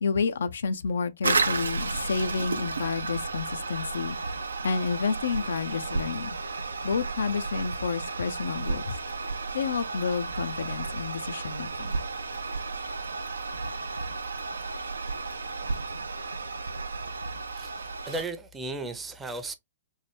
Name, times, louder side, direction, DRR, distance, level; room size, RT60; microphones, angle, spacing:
voice 1, 0.0-4.2 4.6-6.4 6.8-9.0 9.5-12.0, left 5 dB, 70° left, 0.3 m, -30 dB
Toilet flush, 1.2-18.3, right 3 dB, 80° right, 0.4 m, -33 dB
voice 2, 17.5-19.5, right 2 dB, 15° right, 0.5 m, -36 dB
3.1 x 2.1 x 3.1 m
figure-of-eight pair, 115°, 0 cm